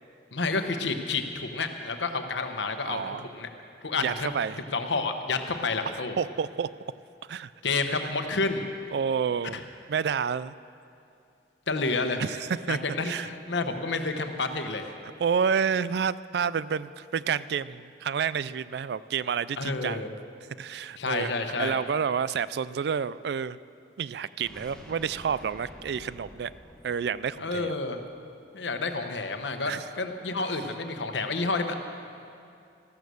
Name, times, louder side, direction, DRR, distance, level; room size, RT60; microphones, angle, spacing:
voice 1, 0.3-3.5 3.8-4.3 4.7-6.2 7.6-8.6 9.5-9.6 11.7-12.2 12.7-14.9 19.6-20.1 21.0-21.8 27.4-28.0 28.5-31.7, left 3 dB, 80° left, 6 dB, 1.1 m, -29 dB
voice 2, 2.8-3.2 4.0-4.6 6.2-6.7 7.3-7.5 7.9-8.0 8.9-9.6 9.9-10.5 12.2-12.8 13.0-13.3 15.2-20.1 20.6-21.3 21.6-23.6 24.0-26.5 26.8-27.8 29.7-29.9, right 7 dB, 65° right, 17 dB, 0.3 m, -29 dB
sound 1, 24.4-28.4, equal, 5° left, 1.1 m, -49 dB
14.0 x 12.5 x 6.8 m, 2.5 s
head